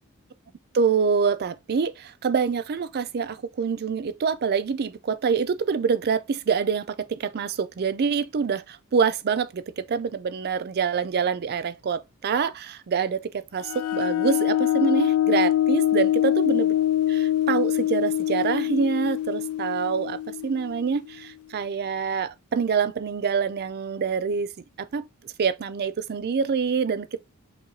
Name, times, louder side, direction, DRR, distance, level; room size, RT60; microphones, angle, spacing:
voice 1, 0.7-16.7 17.1-24.5 24.8-25.0 25.4-27.2, right 6 dB, 45° right, 0.4 m, -26 dB
sound 1, 13.6-21.0, left 12 dB, 70° left, 0.3 m, -24 dB
5.9 x 3.2 x 2.7 m
head